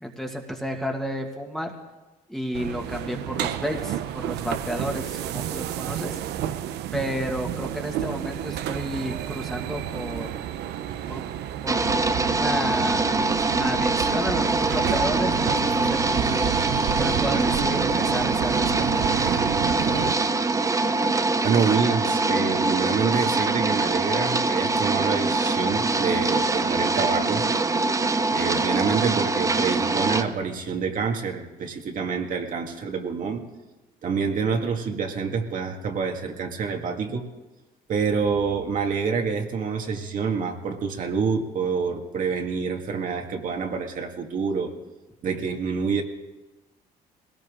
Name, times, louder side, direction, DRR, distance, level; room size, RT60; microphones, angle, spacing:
voice 1, 0.0-1.7 2.3-6.2 6.9-10.3 11.1-11.2 11.6-13.3 13.6-16.5 17.0-19.1, equal, ahead, 1 dB, 2.0 m, -32 dB
sound 1, 2.5-20.1, right 11 dB, 80° right, 0.9 m, -30 dB
sound 2, 11.7-30.2, right 3 dB, 20° right, 0.8 m, -24 dB
voice 2, 21.4-27.4 28.3-33.4 34.0-37.2 37.9-44.7 45.2-46.0, right 5 dB, 50° right, 2 dB, 1.9 m, -27 dB
20.5 x 18.0 x 3.8 m, 1.1 s
cardioid pair, 110°, 17 cm